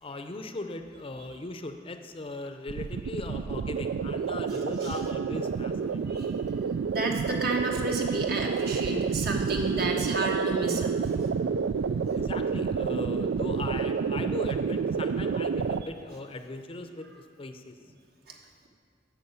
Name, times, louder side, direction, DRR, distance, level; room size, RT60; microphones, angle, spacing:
voice 1, 0.0-6.0 12.1-17.8, left 2 dB, 30° left, 7 dB, 0.6 m, -39 dB
sound 1, 2.7-15.8, right 5 dB, 90° right, 0.4 m, -29 dB
voice 2, 4.5-5.0 6.1-6.4 6.9-10.9 18.3-18.4, right 2 dB, 60° right, 1 dB, 1.4 m, -31 dB
9.5 x 6.1 x 8.2 m, 2.1 s
head